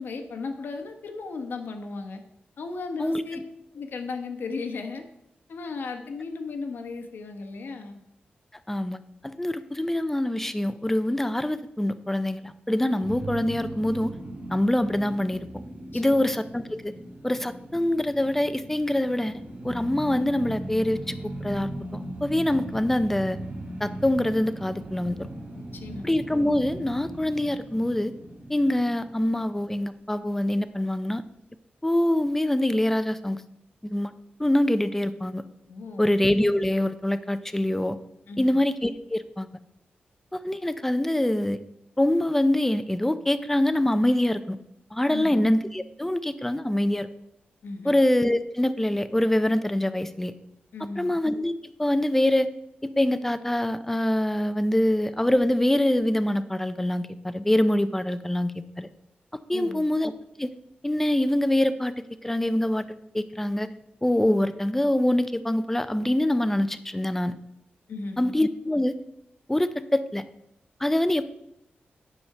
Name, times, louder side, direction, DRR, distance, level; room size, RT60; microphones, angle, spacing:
voice 1, 0.0-2.2 2.6-3.4 3.7-5.0 5.5-8.0 15.9-16.3 25.6-26.1 35.7-36.1 38.3-38.6 45.1-45.4 47.6-47.9 50.7-51.1 59.5-59.8 67.9-68.3, left 4 dB, 75° left, 5 dB, 1.2 m, -35 dB
voice 2, 8.7-14.1 14.5-15.6 15.9-16.9 17.2-21.2 21.4-23.4 23.8-25.3 26.0-28.1 28.5-31.2 31.8-33.4 33.8-34.1 34.4-35.4 36.0-38.0 38.4-39.5 40.3-41.6 42.0-44.6 44.9-47.1 47.8-50.3 51.0-51.5 51.8-52.5 52.8-58.9 59.5-60.1 60.4-60.5 60.8-61.9 62.2-63.7 64.0-67.4 68.2-68.9 69.5-70.2 70.8-71.2, left 1 dB, 10° left, 12 dB, 0.6 m, -24 dB
sound 1, 13.0-30.2, right 1 dB, 40° right, 2.0 m, -39 dB
9.8 x 4.9 x 6.6 m, 0.81 s
wide cardioid pair, 115°, 3 cm